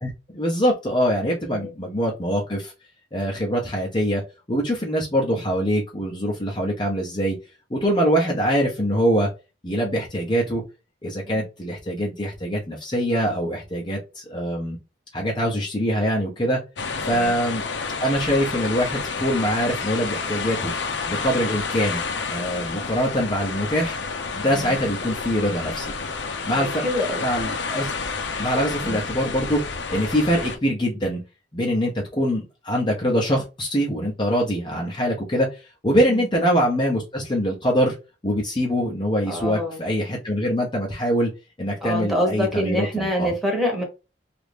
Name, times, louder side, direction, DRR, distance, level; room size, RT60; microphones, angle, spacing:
voice 1, 0.0-2.7 3.1-4.2 4.5-7.4 7.7-9.3 9.6-10.6 11.0-14.8 15.1-16.6 17.0-17.6 18.0-20.7 21.1-22.0 22.3-24.0 24.3-25.9 26.5-27.0 27.2-27.9 28.4-29.6 29.9-31.2 31.5-37.9 38.2-41.3 41.6-43.3, equal, 25° left, 0.7 m, -23 dB
sound 1, 16.8-30.6, left 4 dB, 65° left, 0.6 m, -30 dB
voice 2, 26.6-27.2 28.8-29.0 36.1-36.3 39.3-39.8 41.8-43.8, equal, ahead, 1.0 m, -26 dB
3.0 x 2.5 x 3.3 m
head